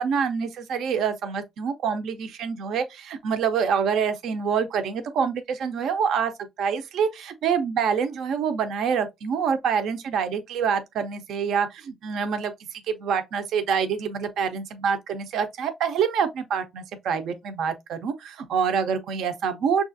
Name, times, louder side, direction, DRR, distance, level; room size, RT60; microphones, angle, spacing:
voice 1, 0.0-6.3 6.6-19.8, right 6 dB, 75° right, 0.5 m, -26 dB
5.9 x 2.4 x 2.5 m
cardioid pair, 90°, 0 cm